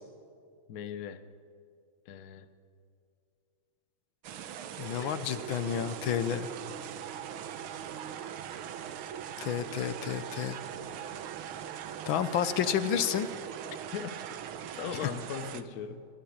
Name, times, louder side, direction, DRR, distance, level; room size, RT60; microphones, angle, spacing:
voice 1, 0.7-1.2 2.1-2.5 5.0-5.4 13.9-14.2 14.8-16.1, left 8 dB, 55° left, 11 dB, 1.1 m, -39 dB
sound 1, 4.2-15.6, right 9 dB, 80° right, 1.8 m, -41 dB
voice 2, 4.8-6.5 9.4-10.6 12.1-13.3, left 9 dB, 75° left, 13 dB, 1.6 m, -30 dB
22.0 x 15.5 x 8.7 m, 2.3 s
omnidirectional pair, 2.3 m